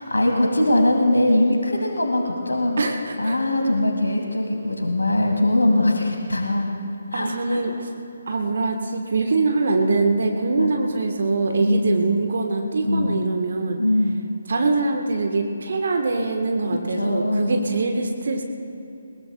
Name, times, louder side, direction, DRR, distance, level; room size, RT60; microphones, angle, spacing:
voice 1, 0.0-2.8 3.2-6.7 7.1-7.6 10.6-10.7 11.6-12.0 12.8-13.2 13.8-14.2 16.9-17.6, left 1 dB, 70° left, 2 dB, 1.9 m, -21 dB
voice 2, 2.8-3.4 7.1-7.9 8.3-13.8 14.5-18.4, right 3 dB, 50° right, 4 dB, 1.2 m, -23 dB
21.0 x 21.0 x 2.2 m, 2.9 s
figure-of-eight pair, 145°, 0 cm